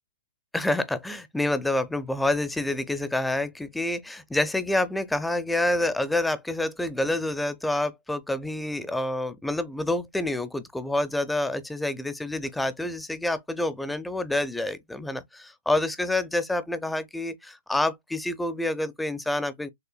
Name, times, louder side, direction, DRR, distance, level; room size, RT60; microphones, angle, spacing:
voice 1, 0.5-19.7, left 1 dB, 5° left, 0.5 m, -28 dB
6.6 x 2.3 x 2.2 m
hypercardioid pair, 165°, 0 cm